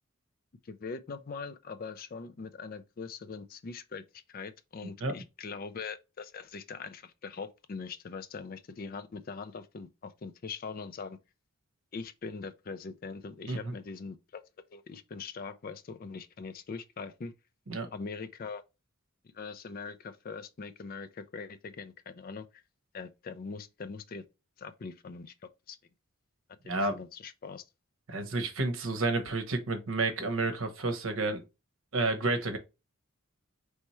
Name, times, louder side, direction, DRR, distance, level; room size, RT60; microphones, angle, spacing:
voice 1, 0.6-11.2 11.9-14.4 14.7-17.3 17.9-18.6 19.3-22.6 22.9-24.2 24.6-25.3 25.7-25.8 26.8-27.6, left 4 dB, 40° left, 0.4 m, -42 dB
voice 2, 26.6-27.0 28.1-31.4 31.9-32.6, right 3 dB, 65° right, 0.9 m, -30 dB
4.2 x 3.4 x 3.0 m
head